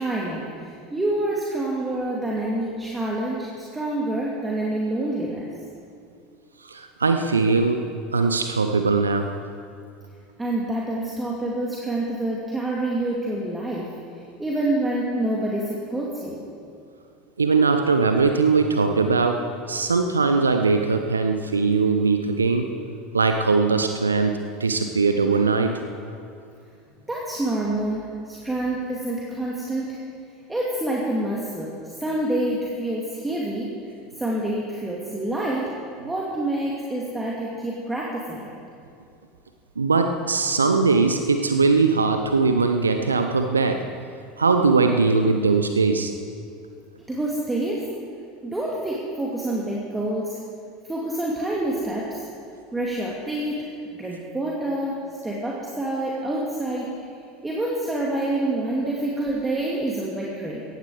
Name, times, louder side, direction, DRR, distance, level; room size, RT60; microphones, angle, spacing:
voice 1, 0.0-5.5 10.4-13.9 14.4-16.4 27.1-30.0 30.5-33.7 34.2-35.7 36.0-38.6 47.1-47.8 48.4-50.4 50.8-52.3 52.7-56.9 57.4-60.6, right 1 dB, 10° right, -4 dB, 2.4 m, -27 dB
voice 2, 6.6-7.8 8.1-9.3 17.4-22.7 23.1-25.8 39.8-43.9 44.4-46.1, right 4 dB, 80° right, 7 dB, 0.7 m, -20 dB
17.5 x 15.0 x 4.9 m, 2.4 s
figure-of-eight pair, 75°, 0 cm